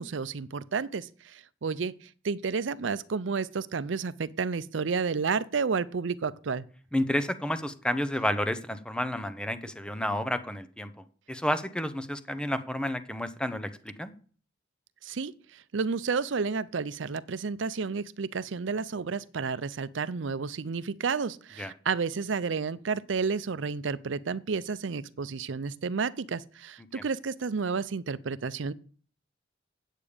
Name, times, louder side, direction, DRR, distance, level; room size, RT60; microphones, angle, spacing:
voice 1, 0.0-6.7 15.0-28.7, right 5 dB, 80° right, 0.5 m, -31 dB
voice 2, 6.9-10.9 11.3-14.1 21.6-21.7 27.0-27.1, left 1 dB, 5° left, 0.7 m, -30 dB
8.9 x 8.4 x 5.1 m
head